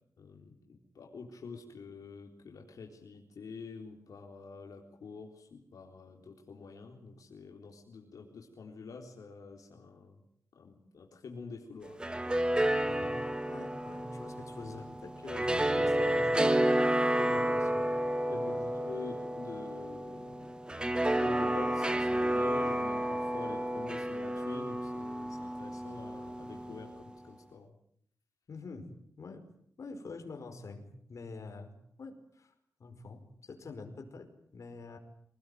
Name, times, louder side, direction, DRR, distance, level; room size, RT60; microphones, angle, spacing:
voice 1, 0.2-10.2 10.6-12.3 17.3-17.5 18.3-20.6 21.2-27.7 32.9-33.0, left 4 dB, 85° left, 1 dB, 3.8 m, -47 dB
sound 1, 11.9-27.0, right 1 dB, 15° right, 1.5 m, -31 dB
voice 2, 12.8-13.2 13.4-16.8 17.1-17.8 18.3-18.6 28.5-28.9 29.2-29.4 29.8-30.8 31.1-32.5 32.8-35.0, left 3 dB, 60° left, 4 dB, 5.1 m, -46 dB
25.5 x 19.0 x 9.4 m, 0.68 s
wide cardioid pair, 135°, 6 cm